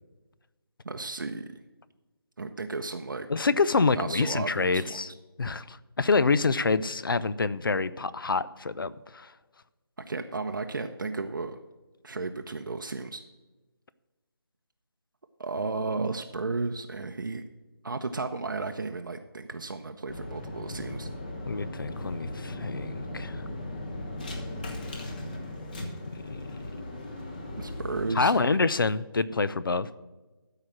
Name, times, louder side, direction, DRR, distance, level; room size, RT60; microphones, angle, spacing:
voice 1, 0.8-1.5 2.4-3.3 3.9-5.0 10.1-11.6 12.0-13.2 15.4-17.4 17.8-21.1 27.6-28.5, right 3 dB, 55° right, 5 dB, 0.7 m, -34 dB
voice 2, 3.3-5.1 5.4-9.3 21.5-23.4 26.1-26.4 28.2-29.9, left 4 dB, 60° left, 17 dB, 0.6 m, -26 dB
sound 1, 20.1-28.2, left 1 dB, 20° left, 1.0 m, -37 dB
13.0 x 4.9 x 7.5 m, 1.2 s
figure-of-eight pair, 165°, 13 cm